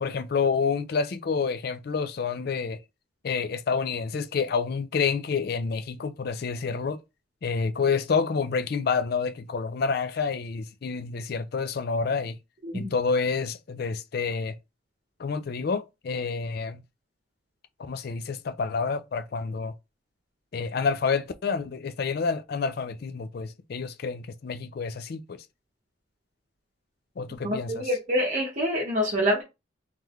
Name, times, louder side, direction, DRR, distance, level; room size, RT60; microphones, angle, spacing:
voice 1, 0.0-2.8 3.2-7.0 7.4-12.4 12.7-14.6 15.2-16.8 17.8-19.7 20.5-25.4 27.2-27.9, left 5 dB, 50° left, 0.4 m, -28 dB
voice 2, 27.4-29.4, equal, 40° right, 0.9 m, -26 dB
3.8 x 3.3 x 3.0 m
head